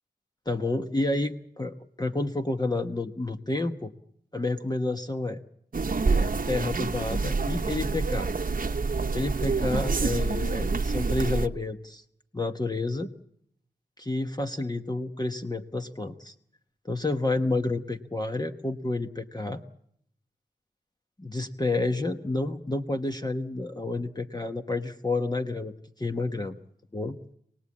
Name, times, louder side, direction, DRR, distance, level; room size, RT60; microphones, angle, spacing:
voice 1, 0.5-3.9 4.3-5.4 6.1-8.3 9.1-12.0 12.3-13.1 14.0-16.3 16.9-19.6 21.2-26.5 26.9-27.2, left 2 dB, 25° left, 5 dB, 1.0 m, -30 dB
sound 1, 5.7-11.5, right 4 dB, 55° right, 0.9 m, -27 dB
26.5 x 19.0 x 8.4 m, 0.71 s
wide cardioid pair, 85°, 18 cm